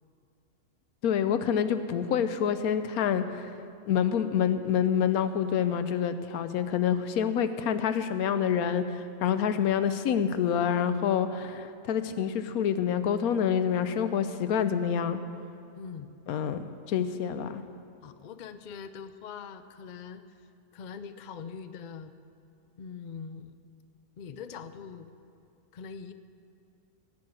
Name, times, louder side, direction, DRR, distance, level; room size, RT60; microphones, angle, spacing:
voice 1, 1.0-3.6 3.9-15.2 16.3-17.6, left 8 dB, 85° left, 11 dB, 1.2 m, -27 dB
voice 2, 15.8-16.1 17.0-17.1 18.0-20.2 20.7-22.1 22.8-23.5 24.2-25.1 25.7-26.1, left 6 dB, 60° left, 10 dB, 0.4 m, -42 dB
17.0 x 6.2 x 8.7 m, 2.6 s
omnidirectional pair, 1.5 m